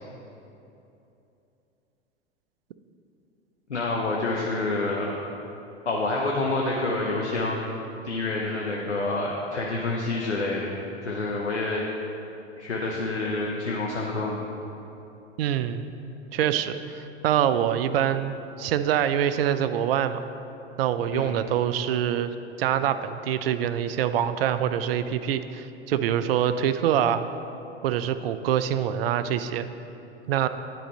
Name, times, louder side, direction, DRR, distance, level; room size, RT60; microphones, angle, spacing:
voice 1, 3.7-5.1 5.9-7.6 8.0-10.7 11.0-11.8 12.6-14.4 21.1-21.3, left 2 dB, 90° left, -2 dB, 0.7 m, -27 dB
voice 2, 15.4-15.9 16.3-20.2 20.8-22.3 22.6-27.3 27.8-29.7 30.3-30.5, right 10 dB, 60° right, 11 dB, 0.5 m, -25 dB
10.0 x 4.1 x 4.1 m, 2.9 s
figure-of-eight pair, 90°, 33 cm